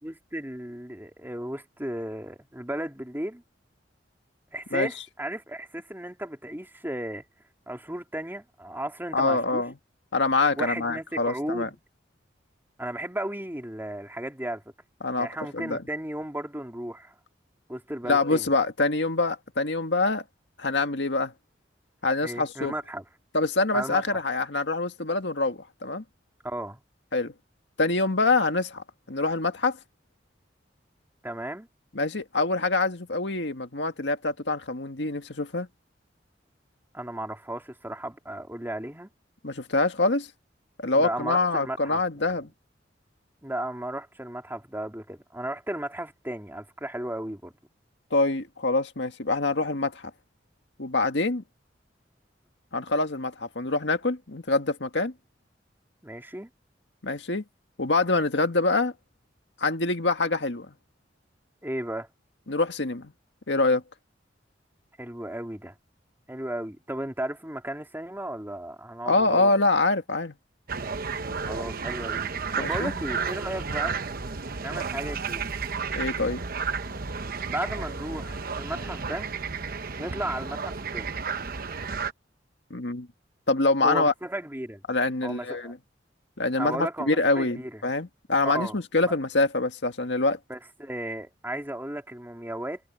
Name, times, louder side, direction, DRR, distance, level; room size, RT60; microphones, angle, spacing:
voice 1, 0.0-3.4 4.5-7.2 7.7-9.6 10.5-11.7 12.8-14.6 15.2-17.1 17.7-18.5 22.2-23.0 23.7-24.2 26.4-26.8 31.2-31.7 36.9-39.1 40.9-42.0 43.4-47.5 56.0-56.5 61.6-62.1 65.0-65.7 66.3-69.5 71.5-72.2 72.6-74.0 74.6-75.5 77.5-79.3 79.9-81.1 83.8-84.8 85.2-85.7 86.6-87.8 88.4-88.8 89.0-89.1 90.5-92.8, right 1 dB, 10° right, 3.0 m, -34 dB
voice 2, 9.1-9.8 10.1-11.7 15.0-15.3 15.5-15.8 18.1-20.2 20.6-21.3 22.0-22.7 23.3-26.0 27.1-27.3 27.8-29.8 31.9-35.7 39.4-40.3 40.8-42.5 48.1-50.1 50.8-51.4 52.7-55.1 57.0-57.4 57.8-58.9 59.6-60.7 62.5-63.1 63.5-63.8 69.1-70.4 72.5-72.9 75.9-76.4 82.7-83.1 83.5-84.1 84.9-85.8 86.4-90.4, left 3 dB, 75° left, 1.9 m, -25 dB
sound 1, 70.7-82.1, right 5 dB, 55° right, 1.0 m, -32 dB
head